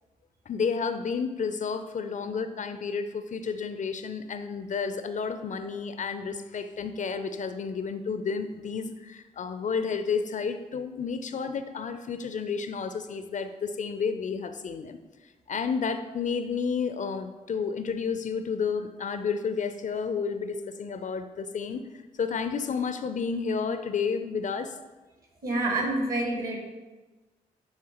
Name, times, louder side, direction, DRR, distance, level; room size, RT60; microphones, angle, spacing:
voice 1, 0.5-15.0 15.5-21.8 22.2-24.7, left 5 dB, 45° left, 9 dB, 0.5 m, -31 dB
voice 2, 25.4-26.6, right 2 dB, 55° right, -1 dB, 2.0 m, -27 dB
9.5 x 3.4 x 3.0 m, 1.2 s
hypercardioid pair, 40°, 18 cm